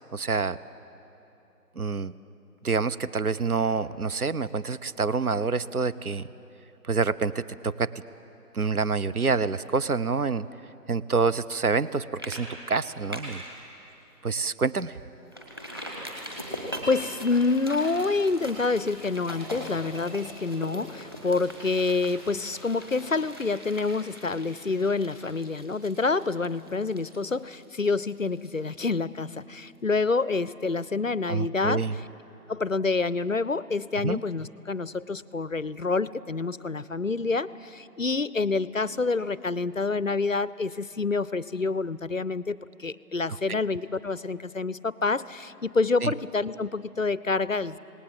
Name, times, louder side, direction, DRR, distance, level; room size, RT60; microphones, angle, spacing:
voice 1, 0.1-0.6 1.8-2.1 2.6-6.3 6.9-7.9 8.5-10.5 10.9-13.4 14.2-15.0 31.3-31.9 34.0-34.2 43.5-43.6 46.0-46.1, right 4 dB, 65° right, 14 dB, 0.7 m, -27 dB
sound 1, 11.6-11.9 12.2-12.4 12.7-13.5 13.9-14.0 14.4-14.5 15.3-28.9 29.2-29.3, equal, 15° right, 1.5 m, -41 dB
voice 2, 16.4-32.1 32.5-47.8, left 3 dB, 55° left, 18 dB, 0.5 m, -27 dB
27.0 x 19.0 x 7.8 m, 3.0 s
figure-of-eight pair, 170°, 48 cm